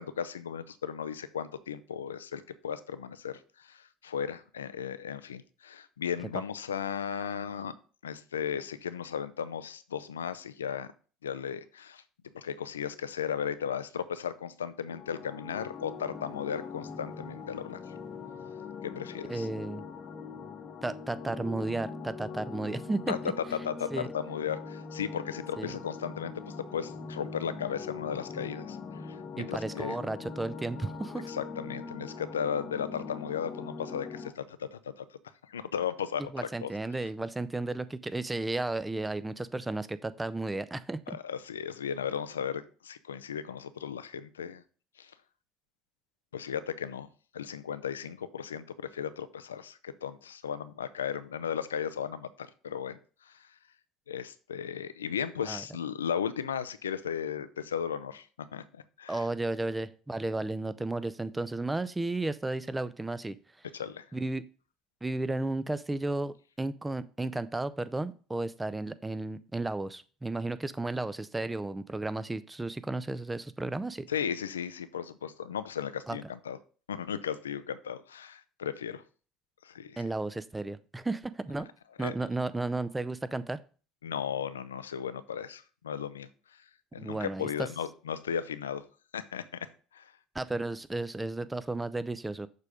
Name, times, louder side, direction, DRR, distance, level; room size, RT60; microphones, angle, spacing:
voice 1, 0.0-7.8 8.0-10.9 11.2-12.0 12.3-17.8 18.8-19.5 23.1-23.2 23.5-30.0 31.3-35.0 35.5-36.7 41.1-44.6 45.0-45.1 46.3-47.1 47.3-53.5 54.1-59.2 63.7-64.0 74.1-76.6 76.9-79.0 79.6-80.1 82.0-82.1 84.0-86.6 86.9-88.8 89.1-89.4 89.9-90.1, left 8 dB, 85° left, 14 dB, 0.4 m, -36 dB
sound 1, 14.9-34.3, left 5 dB, 40° left, 0.9 m, -42 dB
voice 2, 19.3-19.8 20.8-23.3 23.9-24.1 25.6-25.8 29.4-31.3 36.3-41.2 55.4-55.6 59.1-63.4 64.1-64.4 65.0-74.1 76.1-76.2 80.0-81.7 82.0-83.6 87.0-87.5 90.3-92.5, right 2 dB, 15° right, 14 dB, 0.5 m, -33 dB
6.6 x 3.5 x 5.1 m, 0.38 s
hypercardioid pair, 65°, 0 cm